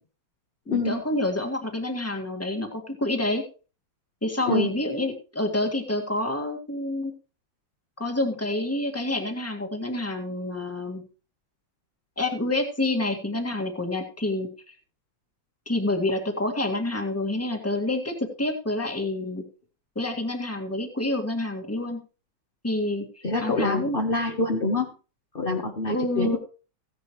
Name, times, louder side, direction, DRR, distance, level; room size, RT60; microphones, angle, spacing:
voice 1, 0.7-3.4 4.2-7.1 8.0-11.0 12.2-14.5 15.7-19.4 20.0-22.0 22.6-24.0 25.8-26.4, left 2 dB, 5° left, 4 dB, 1.8 m, -28 dB
voice 2, 23.2-24.9 25.3-26.4, left 3 dB, 30° left, 2 dB, 1.2 m, -26 dB
16.0 x 10.5 x 3.1 m, 0.35 s
omnidirectional pair, 2.2 m